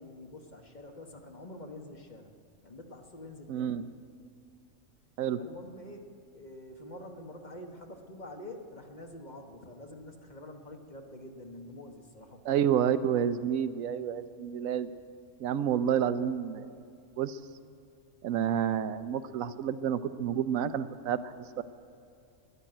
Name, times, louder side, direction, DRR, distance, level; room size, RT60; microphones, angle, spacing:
voice 1, 0.0-2.3 2.6-3.8 5.4-6.0 6.3-12.5, left 1 dB, 35° left, 4 dB, 1.2 m, -46 dB
voice 2, 3.5-3.9 5.2-5.4 12.4-14.9 15.4-16.7 17.2-17.4 18.2-21.6, right 9 dB, 85° right, 12 dB, 1.0 m, -29 dB
12.5 x 11.0 x 8.8 m, 2.5 s
omnidirectional pair, 1.4 m